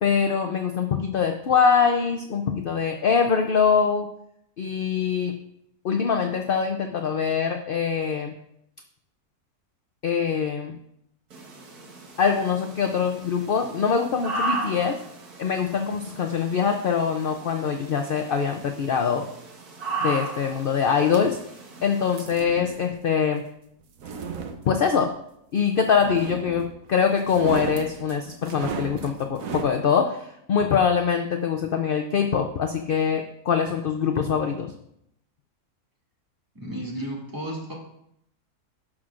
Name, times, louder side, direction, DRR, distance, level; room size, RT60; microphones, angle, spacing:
voice 1, 0.0-4.1 4.6-5.5 5.8-8.3 10.0-10.8 12.2-15.0 15.4-19.3 20.0-21.4 21.8-23.4 24.7-25.1 25.5-30.2 30.5-34.7, left 6 dB, 60° left, 4 dB, 0.6 m, -23 dB
sound 1, 11.3-22.2, right 2 dB, 85° right, 1.8 m, -36 dB
sound 2, 22.1-22.9 23.8-25.1 26.0-26.8 27.2-29.8, right 5 dB, 70° right, 1.2 m, -35 dB
voice 2, 36.5-37.7, right 1 dB, 15° right, -3 dB, 2.2 m, -33 dB
17.5 x 6.0 x 2.5 m, 0.77 s
omnidirectional pair, 1.6 m